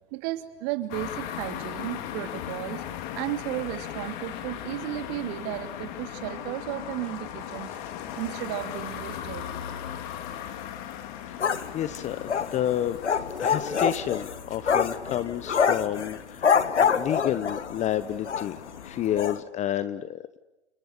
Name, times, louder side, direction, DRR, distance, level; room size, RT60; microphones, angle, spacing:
voice 1, 0.1-2.8 3.1-7.8 8.1-9.5, right 15 dB, 40° right, 9 dB, 2.9 m, -34 dB
sound 1, 0.9-19.3, left 10 dB, 45° left, 3.3 m, -39 dB
voice 2, 11.3-13.0 13.4-18.6 18.8-20.4, left 11 dB, 20° left, 14 dB, 0.9 m, -30 dB
sound 2, 11.4-17.9 18.3-18.5 18.8-18.9 19.2-19.4, left 6 dB, 85° left, 1.7 m, -25 dB
29.5 x 26.5 x 6.8 m, 0.99 s
hypercardioid pair, 120°, 33 cm